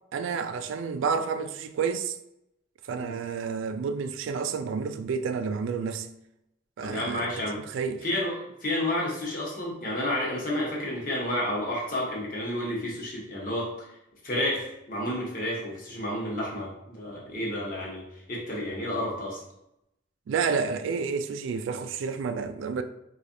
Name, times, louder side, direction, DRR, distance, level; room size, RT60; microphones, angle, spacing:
voice 1, 0.1-2.2 2.9-6.1 6.8-8.0 20.3-22.8, right 5 dB, 90° right, 0.3 m, -30 dB
voice 2, 6.8-7.6 8.0-8.3 8.6-14.0 14.2-18.0 18.3-19.4, left 1 dB, 45° left, 1.0 m, -30 dB
4.4 x 2.4 x 2.6 m
head